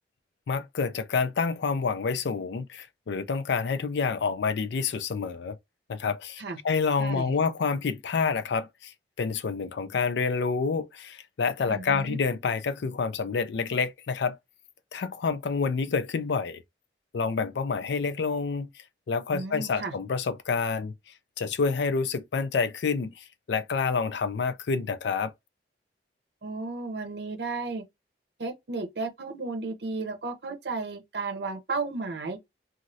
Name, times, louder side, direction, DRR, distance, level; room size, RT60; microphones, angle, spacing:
voice 1, 0.5-5.6 5.9-14.4 14.9-16.6 17.1-18.7 19.1-20.9 21.4-25.3, left 5 dB, 75° left, 0.4 m, -28 dB
voice 2, 7.0-7.3 11.7-12.2 19.3-19.9 26.4-27.8 28.4-32.4, right 3 dB, 70° right, 0.7 m, -33 dB
3.0 x 2.4 x 2.7 m
head